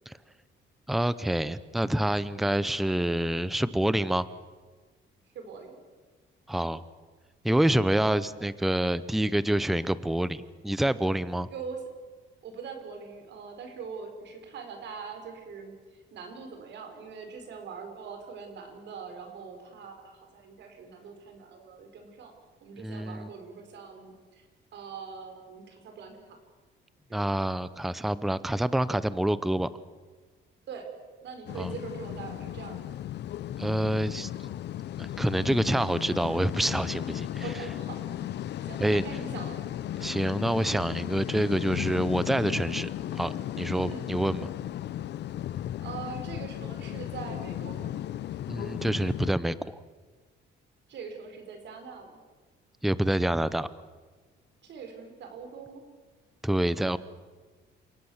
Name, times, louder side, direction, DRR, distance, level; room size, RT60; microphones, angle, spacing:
voice 1, 0.9-4.3 6.5-6.8 7.4-11.5 22.8-23.3 27.1-29.7 31.5-31.7 33.6-34.3 35.0-37.5 38.8-39.0 40.0-44.5 48.5-49.8 52.8-53.7 56.4-57.0, right 1 dB, ahead, 16 dB, 0.6 m, -27 dB
voice 2, 5.3-5.7 11.5-11.8 12.4-15.7 16.1-22.3 22.6-24.5 24.7-26.4 27.1-27.3 30.7-30.9 31.2-33.0 37.4-38.2 38.6-39.6 43.9-44.0 44.4-44.5 45.8-47.9 50.9-52.2 54.6-55.8, right 5 dB, 65° right, 5 dB, 5.0 m, -42 dB
sound 1, 31.5-49.3, left 12 dB, 60° left, 0.7 m, -35 dB
29.0 x 18.0 x 7.2 m, 1.4 s
cardioid pair, 165°, 20 cm